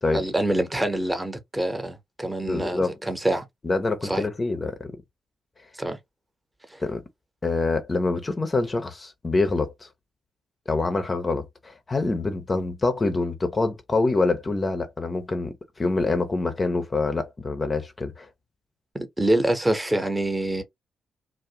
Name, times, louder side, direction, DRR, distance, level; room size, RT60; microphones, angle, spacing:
voice 1, 0.1-3.4 4.0-4.2 5.8-6.0 6.7-6.8 18.9-20.6, right 1 dB, 15° right, 0.8 m, -25 dB
voice 2, 2.5-3.0 3.6-4.9 6.8-7.0 7.4-9.9 10.7-18.3, left 3 dB, 35° left, 0.5 m, -26 dB
2.5 x 2.0 x 2.8 m
hypercardioid pair, 40°, 0 cm